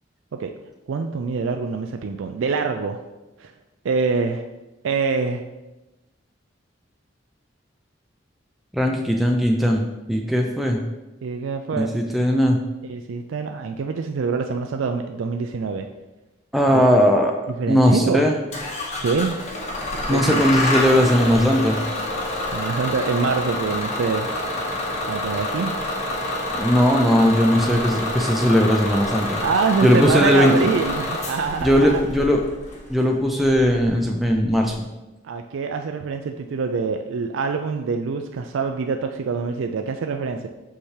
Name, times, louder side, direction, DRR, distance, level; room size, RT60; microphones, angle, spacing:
voice 1, 0.9-3.0 3.4-3.5 3.8-4.4 4.8-5.4 11.2-11.9 12.8-15.9 16.7-17.1 17.5-18.3 19.0-19.4 20.0-20.4 22.5-24.3 25.1-25.7 29.4-32.0 35.2-40.5, right 5 dB, 85° right, 5 dB, 0.4 m, -25 dB
voice 2, 8.7-9.8 10.1-10.8 11.8-12.6 16.5-17.3 17.7-18.3 20.1-21.8 26.6-29.4 29.8-30.7 31.6-32.4 32.9-34.7, equal, ahead, 0 dB, 0.4 m, -18 dB
Bus / Engine starting, 18.5-34.7, left 1 dB, 35° left, 1.0 m, -28 dB
5.7 x 5.4 x 3.3 m, 1.0 s
head